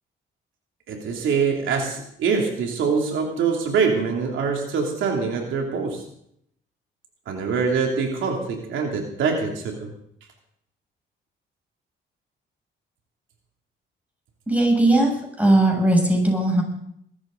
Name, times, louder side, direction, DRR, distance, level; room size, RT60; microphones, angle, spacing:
voice 1, 0.9-6.0 7.3-9.9, right 5 dB, 75° right, 1 dB, 2.8 m, -24 dB
voice 2, 14.5-15.1 15.4-16.6, right 1 dB, 5° right, 0 dB, 7.4 m, -18 dB
21.5 x 13.5 x 3.9 m, 0.70 s
cardioid pair, 90°, 20 cm